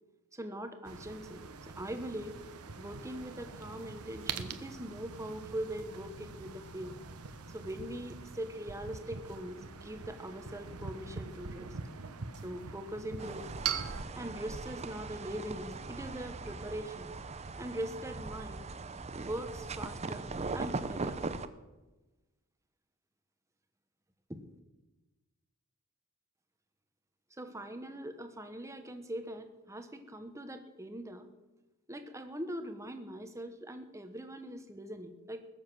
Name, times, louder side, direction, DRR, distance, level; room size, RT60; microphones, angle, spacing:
voice 1, 0.3-2.4 2.8-7.0 7.5-11.8 12.4-13.5 14.1-17.1 17.6-18.6 19.1-21.2 24.3-24.4 27.4-31.3 31.9-35.5, right 1 dB, 15° right, 7 dB, 1.1 m, -42 dB
sound 1, 0.8-14.0, right 6 dB, 85° right, 1.1 m, -43 dB
sound 2, 13.2-21.5, right 3 dB, 30° right, 0.6 m, -40 dB
20.0 x 7.4 x 6.2 m, 1.1 s
head